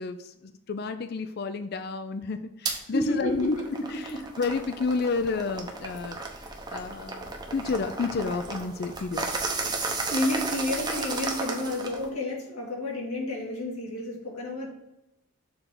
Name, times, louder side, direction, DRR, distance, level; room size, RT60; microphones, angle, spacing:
voice 1, 0.0-3.6 3.9-4.0 4.4-6.2 6.7-9.3, left 4 dB, 45° left, 10 dB, 0.4 m, -30 dB
sound 1, 2.6-2.8 3.3-12.1, right 3 dB, 20° right, 0.8 m, -34 dB
voice 2, 2.9-4.3 10.1-14.7, left 1 dB, 90° left, -2 dB, 2.4 m, -31 dB
6.8 x 3.9 x 5.9 m, 0.89 s
head